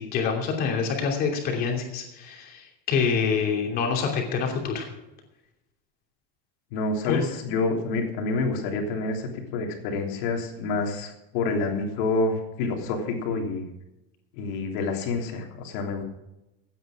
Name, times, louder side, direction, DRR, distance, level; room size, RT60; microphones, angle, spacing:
voice 1, 0.0-2.6 2.9-4.9 7.0-7.2, left 6 dB, 30° left, 2 dB, 2.8 m, -26 dB
voice 2, 6.7-13.6 14.4-16.0, left 3 dB, 60° left, 2 dB, 3.2 m, -28 dB
16.0 x 9.2 x 4.9 m, 0.94 s
cardioid pair, 180°, 29 cm